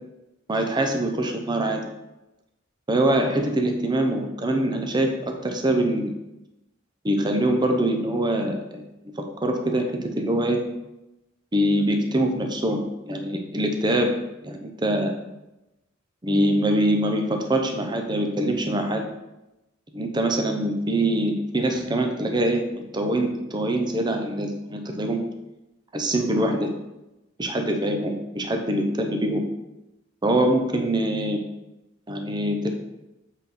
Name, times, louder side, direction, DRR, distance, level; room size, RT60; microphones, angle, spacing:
voice 1, 0.5-1.8 2.9-6.1 7.0-8.9 9.2-9.9 10.2-10.6 11.5-14.1 14.4-15.1 16.2-19.0 19.9-22.6 22.9-25.2 25.9-26.7 27.4-29.4 30.2-31.4 32.1-32.7, right 1 dB, 20° right, 4 dB, 0.7 m, -24 dB
7.5 x 4.1 x 4.2 m, 0.95 s
head